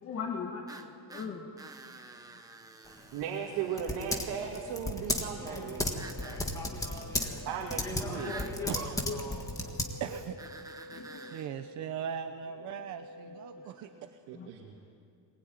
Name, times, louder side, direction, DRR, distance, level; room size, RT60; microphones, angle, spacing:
voice 1, 0.0-1.5 6.4-6.5 8.2-8.8 9.1-9.8 10.9-11.4 13.6-13.8 14.3-14.5, left 5 dB, 35° left, 1 dB, 1.9 m, -40 dB
sound 1, 0.7-3.8 5.9-6.4 8.1-8.6 10.4-11.5, right 3 dB, 10° right, 0.9 m, -48 dB
Typing, 2.9-10.3, left 1 dB, 10° left, 1.7 m, -35 dB
voice 2, 3.1-5.9 7.5-8.3 14.3-14.7, right 8 dB, 75° right, 0 dB, 2.4 m, -36 dB
sound 2, 3.7-13.7, left 1 dB, 70° left, 5.2 m, -49 dB
voice 3, 8.7-9.0 10.0-10.4 11.2-14.1, right 9 dB, 50° right, 8 dB, 0.9 m, -39 dB
23.5 x 20.0 x 9.4 m, 2.3 s
cardioid pair, 180°, 38 cm